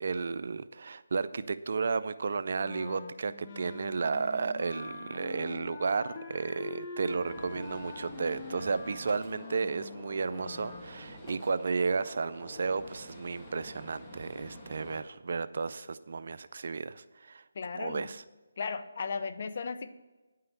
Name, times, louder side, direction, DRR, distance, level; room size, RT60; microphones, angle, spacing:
voice 1, 0.0-17.4 17.8-18.2, right 4 dB, 55° right, 13 dB, 0.5 m, -33 dB
Wind instrument woodwind instrument, 2.6-10.9, left 5 dB, 30° left, 1.0 m, -45 dB
Gunshot gunfire, 7.1-15.0, equal, 15° left, 1.4 m, -48 dB
voice 2, 17.5-18.1 18.6-19.9, left 5 dB, 50° left, 11 dB, 0.7 m, -35 dB
9.7 x 5.7 x 8.1 m, 1.2 s
figure-of-eight pair, 160°, 0 cm